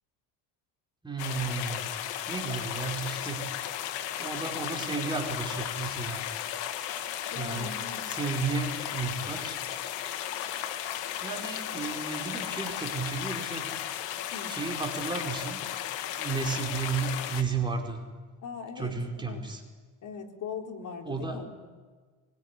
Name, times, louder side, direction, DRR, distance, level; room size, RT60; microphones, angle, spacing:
voice 1, 1.0-1.9 2.3-3.5 4.2-6.3 7.3-7.8 8.1-9.6 11.2-13.7 14.5-15.6 16.2-18.0 18.7-19.6 21.0-21.4, right 4 dB, 10° right, 1 dB, 4.9 m, -33 dB
sound 1, 1.2-17.4, left 11 dB, 75° left, 2.4 m, -35 dB
voice 2, 7.3-8.0 14.3-14.6 18.4-19.4 20.0-21.7, left 5 dB, 45° left, 1 dB, 4.4 m, -40 dB
24.5 x 23.0 x 9.9 m, 1.4 s
cardioid pair, 125°, 43 cm